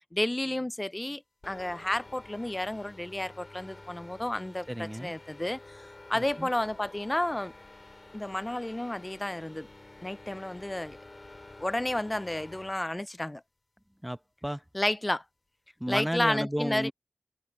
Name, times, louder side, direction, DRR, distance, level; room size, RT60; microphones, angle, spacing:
voice 1, 0.1-7.5 8.1-9.7 10.0-11.0 11.6-13.4 14.7-15.2 15.9-16.9, left 1 dB, 25° left, 0.5 m, -31 dB
sound 1, 1.4-12.8, left 2 dB, 45° left, 3.1 m, -50 dB
voice 2, 4.7-5.1 6.1-6.5 14.0-14.6 15.8-16.9, equal, 10° right, 1.0 m, -33 dB
wide cardioid pair, 65°, 0 cm